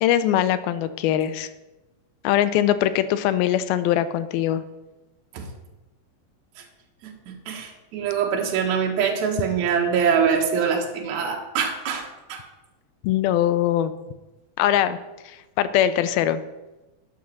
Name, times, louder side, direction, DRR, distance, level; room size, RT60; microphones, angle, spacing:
voice 1, 0.0-1.5 2.2-4.6 13.0-13.9 14.6-15.0 15.3-16.4, left 11 dB, 85° left, 13 dB, 2.4 m, -22 dB
voice 2, 7.0-12.4, right 6 dB, 60° right, 0 dB, 2.5 m, -24 dB
12.0 x 6.4 x 5.9 m, 1.1 s
omnidirectional pair, 4.3 m